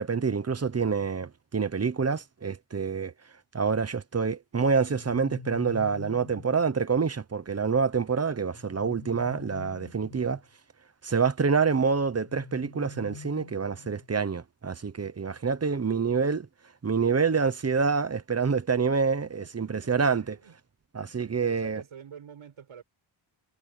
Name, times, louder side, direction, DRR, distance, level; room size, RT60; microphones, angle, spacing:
voice 1, 0.0-3.1 3.5-10.4 11.0-16.4 16.8-20.4 20.9-21.8, right 5 dB, 30° right, 1.0 m, -27 dB
sound 1, 4.8-6.7 8.5-10.4 12.2-14.2, left 5 dB, 65° left, 3.7 m, -46 dB
voice 2, 19.2-20.6 21.1-22.8, right 7 dB, 90° right, 6.1 m, -50 dB
wide cardioid pair, 165°, 48 cm